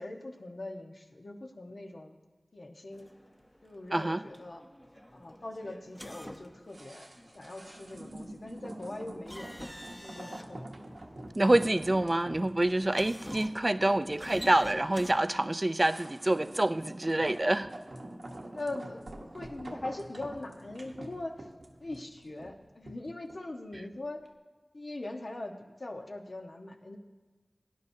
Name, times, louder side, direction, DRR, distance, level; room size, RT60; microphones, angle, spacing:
voice 1, 0.0-2.1 2.5-3.1 3.6-4.6 5.1-7.1 7.3-9.6 10.0-10.6 11.0-11.1 13.8-14.1 18.5-21.3 21.8-24.2 24.7-27.0, left 2 dB, 70° left, 2 dB, 1.2 m, -41 dB
sound 1, 2.9-15.1, equal, 15° left, 1.0 m, -48 dB
voice 2, 3.9-4.2 11.4-17.7, right 1 dB, 35° right, 13 dB, 0.4 m, -27 dB
sound 2, 6.7-24.0 24.3-24.4, right 1 dB, 80° right, 1.2 m, -46 dB
18.0 x 10.5 x 2.8 m, 1.3 s
wide cardioid pair, 50°, 0 cm